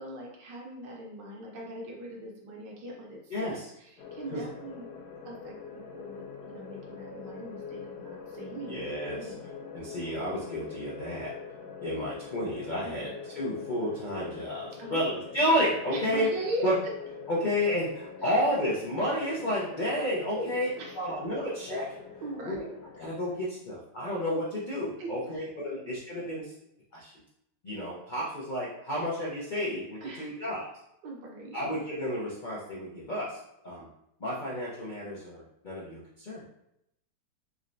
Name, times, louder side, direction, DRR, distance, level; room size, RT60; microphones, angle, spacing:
voice 1, 0.0-4.9 5.2-9.5 12.8-13.1 14.8-15.0 15.9-16.9 18.2-18.4 20.3-21.1 22.2-22.7 25.0-25.4 25.7-25.9 30.0-30.3 31.0-31.6, right 1 dB, 75° right, -1 dB, 1.4 m, -40 dB
voice 2, 3.3-3.6 4.3-4.5 8.7-9.3 9.7-11.3 11.8-13.1 13.3-16.3 16.6-16.8 17.3-20.7 20.9-22.0 22.4-22.6 23.0-26.5 26.9-27.1 27.6-30.7 31.5-33.4 33.6-33.9 34.2-36.4, equal, 85° left, -6 dB, 0.4 m, -31 dB
sound 1, 4.0-23.4, left 5 dB, 70° left, 1.1 m, -44 dB
3.7 x 3.2 x 2.5 m, 0.79 s
omnidirectional pair, 1.9 m